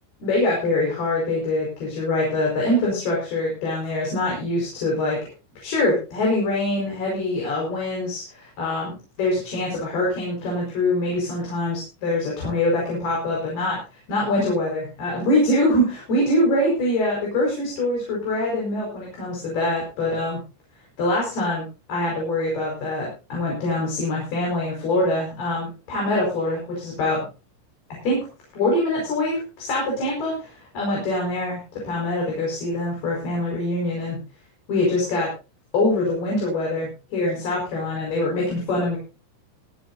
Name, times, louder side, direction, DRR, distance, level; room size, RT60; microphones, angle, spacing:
voice 1, 0.2-5.2 5.6-13.8 14.1-20.4 21.0-27.2 28.0-28.3 28.5-34.2 34.7-35.3 35.7-39.0, left 1 dB, 55° left, -3 dB, 6.9 m, -24 dB
25.0 x 8.9 x 2.7 m, 0.32 s
omnidirectional pair, 5.6 m